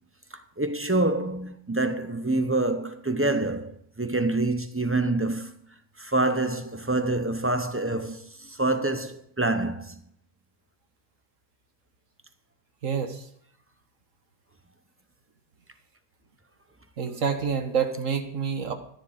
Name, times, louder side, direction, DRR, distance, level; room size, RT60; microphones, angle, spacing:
voice 1, 0.6-5.5 6.0-10.0, right 2 dB, 10° right, 0.6 m, -26 dB
voice 2, 12.8-13.2 17.0-18.7, right 6 dB, 60° right, 1.8 m, -27 dB
13.5 x 10.5 x 5.0 m
omnidirectional pair, 1.6 m